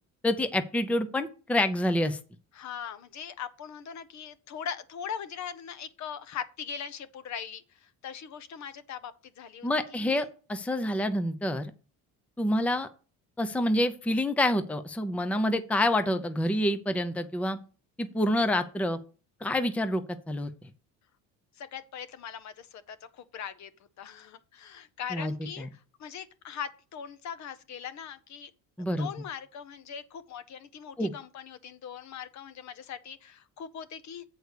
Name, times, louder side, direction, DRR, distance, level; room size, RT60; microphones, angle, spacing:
voice 1, 0.2-2.2 9.6-11.7 12.4-12.9 13.4-17.6 18.0-19.0 19.4-20.5 25.1-25.3 25.6-25.7 28.8-29.1 31.0-31.1, left 1 dB, 5° left, 0.6 m, -27 dB
voice 2, 2.5-10.3 21.6-23.7 24.0-28.5 28.8-34.2, left 8 dB, 50° left, 0.9 m, -41 dB
8.1 x 4.7 x 6.6 m
cardioid pair, 135°, 35 cm